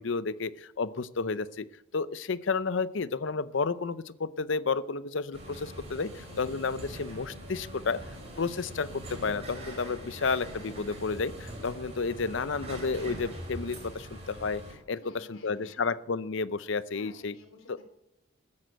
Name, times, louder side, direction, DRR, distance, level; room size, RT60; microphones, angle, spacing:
voice 1, 0.0-1.6 1.9-8.0 8.4-14.6 14.9-17.3 17.7-17.8, left 4 dB, 65° left, 16 dB, 0.6 m, -31 dB
sound 1, 5.3-14.7, equal, 30° right, 4.9 m, -43 dB
voice 2, 15.0-16.0 16.9-17.8, left 2 dB, 85° left, 4 dB, 3.3 m, -55 dB
14.0 x 9.7 x 7.7 m, 0.86 s
head